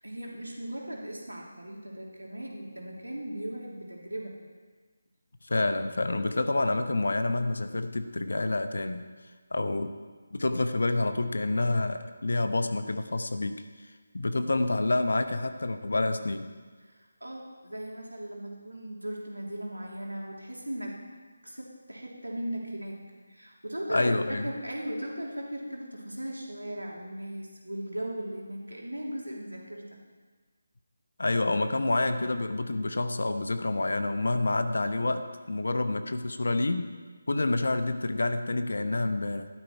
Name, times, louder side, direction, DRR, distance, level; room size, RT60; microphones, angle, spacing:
voice 1, 0.0-4.4 16.8-21.0 21.4-23.0 23.3-30.0, right 1 dB, 80° right, -1 dB, 3.2 m, -38 dB
voice 2, 5.4-9.0 9.5-9.9 10.3-13.6 14.1-16.5 23.9-24.5 31.2-36.9 37.3-39.5, left 2 dB, 60° left, 9 dB, 0.9 m, -28 dB
13.0 x 12.5 x 4.7 m, 1.4 s
figure-of-eight pair, 155°, 0 cm